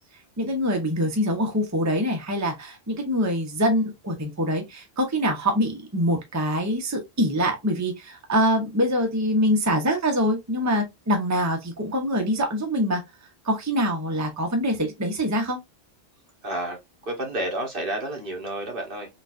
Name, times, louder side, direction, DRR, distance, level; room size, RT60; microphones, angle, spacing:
voice 1, 0.4-13.0 13.4-15.6, equal, 15° right, 0.8 m, -24 dB
voice 2, 16.4-16.8 17.1-19.2, right 1 dB, 55° right, 1.2 m, -30 dB
4.0 x 2.4 x 2.5 m
omnidirectional pair, 1.1 m